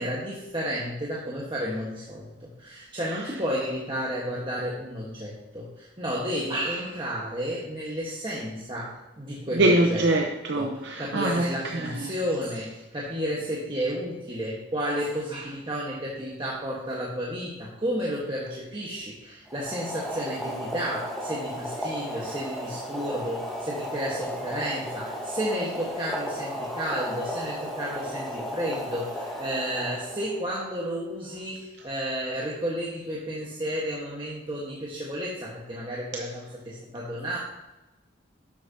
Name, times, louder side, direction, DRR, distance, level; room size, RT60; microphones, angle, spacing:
voice 1, 0.0-10.1 10.5-37.4, equal, 25° right, 1.4 m, -32 dB
voice 2, 9.6-11.5 11.7-12.1, right 2 dB, 60° right, 0.8 m, -23 dB
Boiling, 19.5-30.5, equal, ahead, 1.3 m, -34 dB
11.0 x 7.7 x 2.8 m
head